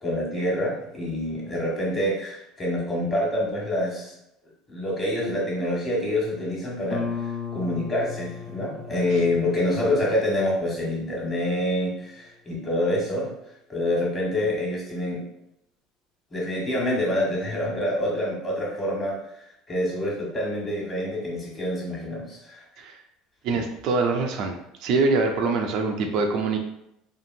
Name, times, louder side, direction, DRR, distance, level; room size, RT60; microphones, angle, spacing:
voice 1, 0.0-4.2 4.7-13.3 13.7-15.2 16.3-19.2 19.7-22.6, left 1 dB, 30° left, -3 dB, 1.3 m, -26 dB
Guitar, 6.9-12.3, left 6 dB, 45° left, 0.4 m, -37 dB
voice 2, 23.4-24.5 24.8-26.6, right 3 dB, 60° right, 3 dB, 0.4 m, -24 dB
2.8 x 2.5 x 2.6 m, 0.80 s
hypercardioid pair, 75°, 0 cm